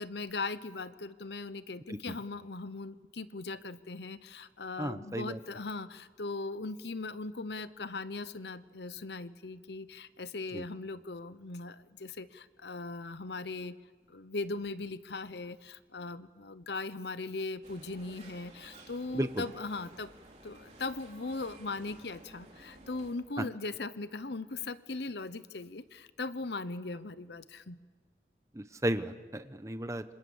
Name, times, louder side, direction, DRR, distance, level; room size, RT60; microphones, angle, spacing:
voice 1, 0.0-13.8 14.1-20.1 20.4-27.8, left 3 dB, 75° left, 14 dB, 0.9 m, -39 dB
voice 2, 4.8-5.4 10.5-10.7 19.1-19.5 23.4-23.5 28.5-30.0, right 1 dB, 15° right, 10 dB, 0.9 m, -34 dB
sound 1, 17.6-23.1, right 2 dB, 40° right, 4.0 m, -54 dB
27.0 x 26.5 x 7.2 m, 1.5 s
head